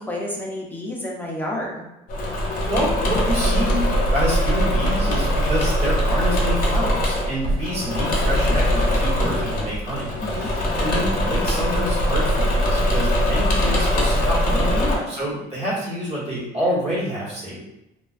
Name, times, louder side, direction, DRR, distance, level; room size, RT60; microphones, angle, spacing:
voice 1, 0.0-1.9 10.2-10.5 14.7-15.1, left 1 dB, 10° left, -3 dB, 0.5 m, -30 dB
Engine / Mechanisms, 2.1-15.0, equal, 55° left, 0.7 m, -21 dB
voice 2, 2.7-17.6, equal, 40° right, -7 dB, 1.2 m, -27 dB
2.3 x 2.2 x 2.4 m, 0.92 s
cardioid pair, 110°, 17 cm